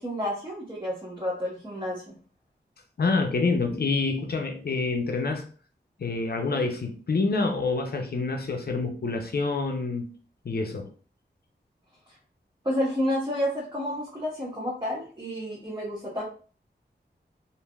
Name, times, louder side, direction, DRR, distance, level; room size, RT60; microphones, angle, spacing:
voice 1, 0.0-2.1 12.1-12.2 12.6-16.2, equal, 25° right, 0.9 m, -30 dB
voice 2, 3.0-5.4 6.0-10.1 10.4-10.9, left 3 dB, 60° left, 0.5 m, -27 dB
3.2 x 2.5 x 2.3 m
wide cardioid pair, 85°, 19 cm